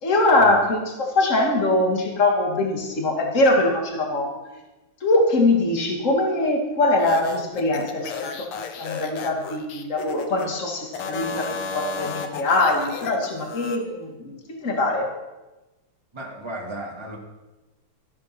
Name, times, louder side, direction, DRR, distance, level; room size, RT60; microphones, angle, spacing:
voice 1, 0.0-4.3 5.0-8.5 8.8-15.1, left 2 dB, 35° left, 1 dB, 2.5 m, -22 dB
sound 1, 7.0-10.5 10.9-13.8, left 5 dB, 85° left, 2.0 m, -33 dB
voice 2, 16.1-17.2, right 1 dB, 15° right, -2 dB, 2.0 m, -34 dB
13.5 x 9.4 x 6.1 m, 1.1 s
omnidirectional pair, 2.3 m